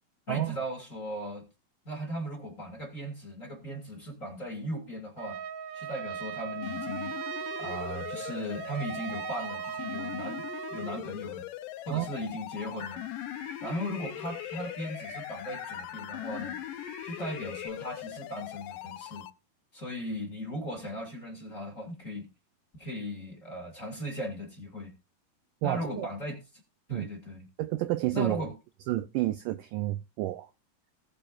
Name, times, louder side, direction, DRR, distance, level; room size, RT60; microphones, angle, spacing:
voice 1, 0.3-1.5 1.8-5.4 5.7-7.2 7.6-11.4 11.8-13.1 13.6-16.6 17.0-19.3 19.7-22.3 22.7-24.9 25.6-26.4 26.9-27.5 28.1-28.5, equal, 25° left, 2.1 m, -37 dB
Trumpet, 5.2-11.1, right 8 dB, 65° right, 2.8 m, -38 dB
sound 1, 6.6-19.3, left 14 dB, 85° left, 1.9 m, -41 dB
sound 2, 12.8-17.7, left 5 dB, 60° left, 3.8 m, -44 dB
voice 2, 25.6-26.1 26.9-27.1 27.6-28.4 28.9-30.5, right 16 dB, 85° right, 1.9 m, -30 dB
19.0 x 6.9 x 2.5 m
omnidirectional pair, 4.5 m